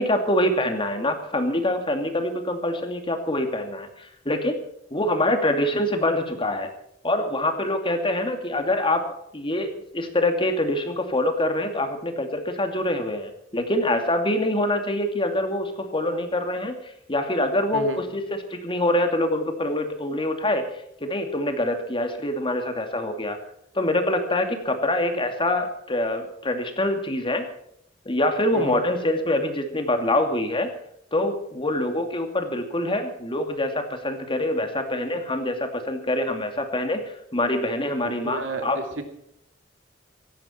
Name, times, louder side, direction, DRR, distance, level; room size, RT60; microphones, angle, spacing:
voice 1, 0.0-4.6 4.9-6.7 7.0-9.0 9.3-16.8 17.1-20.6 21.0-23.4 23.7-27.5 28.1-30.7 31.1-38.8, left 1 dB, 25° left, 5 dB, 2.5 m, -25 dB
voice 2, 28.5-28.8 38.0-39.0, right 1 dB, 75° right, 6 dB, 2.6 m, -31 dB
17.0 x 16.0 x 4.5 m, 0.74 s
head